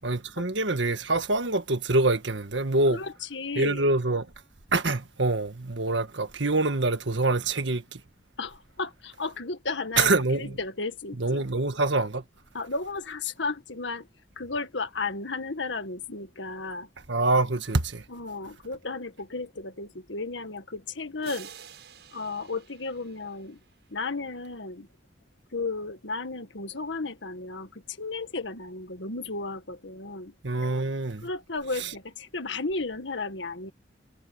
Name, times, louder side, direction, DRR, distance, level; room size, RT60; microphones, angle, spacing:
voice 1, 0.0-3.0 3.5-4.3 4.7-8.0 10.0-10.5 11.2-12.2 17.1-18.0 30.4-31.3 31.8-31.9, right 2 dB, 85° right, 1.7 m, -25 dB
voice 2, 2.9-3.9 8.4-11.5 12.5-14.1 14.4-16.9 18.1-21.5 22.1-23.6 23.9-24.9 25.5-30.3 31.2-33.7, left 3 dB, 85° left, 1.9 m, -34 dB
sound 1, 21.2-24.0, right 7 dB, 65° right, 7.0 m, -49 dB
head